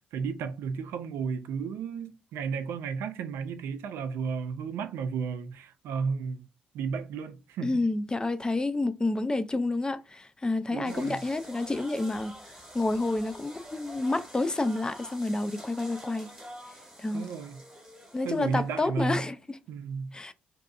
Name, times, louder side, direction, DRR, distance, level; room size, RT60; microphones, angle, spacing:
voice 1, 0.1-6.4 6.7-7.8 10.7-11.2 17.1-17.6 18.2-19.2 19.7-20.3, right 5 dB, 65° right, 0.4 m, -33 dB
voice 2, 7.6-12.3 12.7-16.3 17.0-17.3 18.1-19.6 20.1-20.3, left 2 dB, 20° left, 0.4 m, -29 dB
sound 1, 10.8-18.8, equal, 10° right, 1.1 m, -47 dB
2.6 x 2.3 x 2.4 m
figure-of-eight pair, 40°, 4 cm